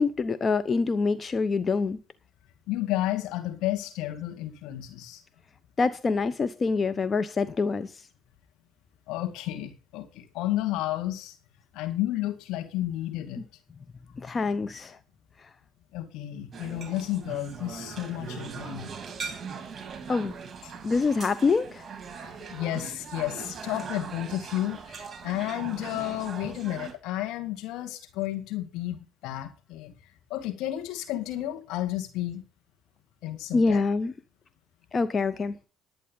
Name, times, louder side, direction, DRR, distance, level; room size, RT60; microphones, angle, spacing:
voice 1, 0.0-2.0 5.8-7.9 14.2-15.0 20.1-20.3 20.8-21.9 33.5-34.1 34.9-35.5, left 4 dB, 35° left, 0.8 m, -25 dB
voice 2, 2.7-5.2 9.1-11.4 11.7-13.4 15.9-18.9 20.6-20.7 22.2-29.9 30.3-32.4 33.2-33.8, left 14 dB, 75° left, 2.1 m, -32 dB
sound 1, 16.5-26.9, right 6 dB, 40° right, 3.5 m, -40 dB
11.0 x 9.0 x 5.5 m
supercardioid pair, 70°, 0 cm